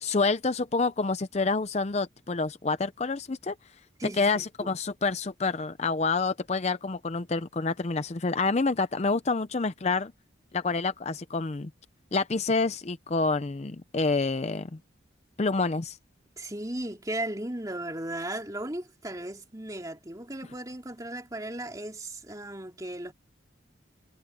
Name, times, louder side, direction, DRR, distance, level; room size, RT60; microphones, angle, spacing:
voice 1, 0.0-3.5 4.2-10.1 10.5-11.7 12.1-14.8 15.4-16.0, left 3 dB, 35° left, 0.5 m, -28 dB
voice 2, 4.0-4.3 4.6-4.7 16.4-23.1, right 1 dB, 20° right, 3.1 m, -36 dB
head